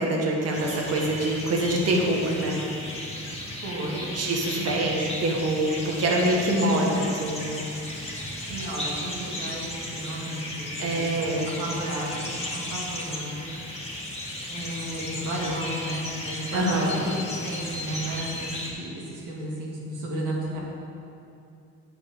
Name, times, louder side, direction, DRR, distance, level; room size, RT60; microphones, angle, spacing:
voice 1, 0.0-2.6 4.1-7.7 10.8-11.5 16.5-17.0, right 1 dB, 55° right, -1 dB, 1.6 m, -25 dB
sound 1, 0.5-18.7, left 1 dB, 20° left, 1.8 m, -35 dB
voice 2, 3.6-4.1 4.4-4.7 6.5-6.9 8.4-11.3 11.6-13.5 14.5-17.1 17.4-20.6, right 1 dB, 90° right, -4 dB, 2.0 m, -33 dB
8.5 x 6.7 x 5.0 m, 2.6 s
cardioid pair, 90°, 30 cm